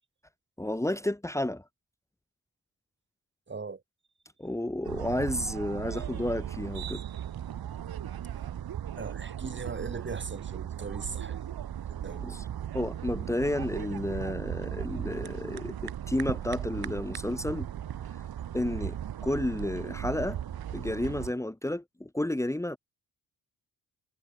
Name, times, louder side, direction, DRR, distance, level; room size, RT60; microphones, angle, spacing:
voice 1, 0.6-1.6 4.4-7.0 12.2-12.5 12.7-17.7 18.5-19.0 19.2-20.4 20.7-22.8, left 1 dB, 10° left, 2.4 m, -31 dB
voice 2, 3.5-3.8 9.0-11.4 11.9-12.3, right 4 dB, 30° right, 3.7 m, -39 dB
sound 1, 4.8-21.3, right 10 dB, 70° right, 2.5 m, -37 dB
wide cardioid pair, 125°, 37 cm